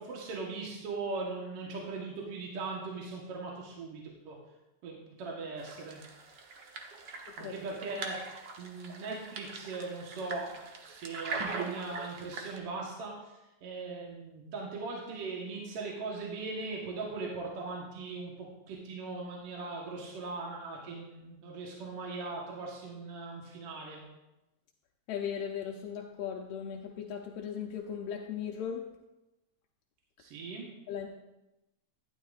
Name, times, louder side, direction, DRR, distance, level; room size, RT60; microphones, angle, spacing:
voice 1, 0.0-4.4 4.8-6.0 7.4-8.3 8.6-10.5 10.8-24.0 30.2-30.7, right 3 dB, 60° right, -2 dB, 2.0 m, -39 dB
sound 1, 5.6-12.6, right 4 dB, 85° right, 0.9 m, -42 dB
voice 2, 25.1-28.9 30.9-31.1, left 8 dB, 75° left, 1 dB, 1.5 m, -37 dB
12.0 x 10.5 x 2.4 m, 0.98 s
omnidirectional pair, 3.4 m